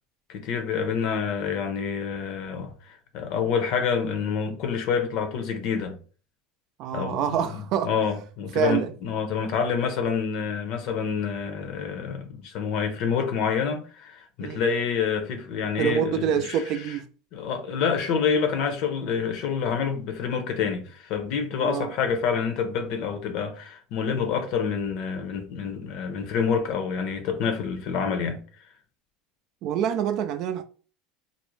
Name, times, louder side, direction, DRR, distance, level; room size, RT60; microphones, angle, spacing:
voice 1, 0.3-6.0 6.9-16.6 17.3-28.4, left 6 dB, 65° left, 0.7 m, -27 dB
voice 2, 6.8-7.9 8.5-8.9 14.4-14.6 15.8-17.0 21.6-21.9 29.6-30.6, right 9 dB, 60° right, 0.4 m, -26 dB
2.5 x 2.0 x 3.1 m
hypercardioid pair, 95°, 0 cm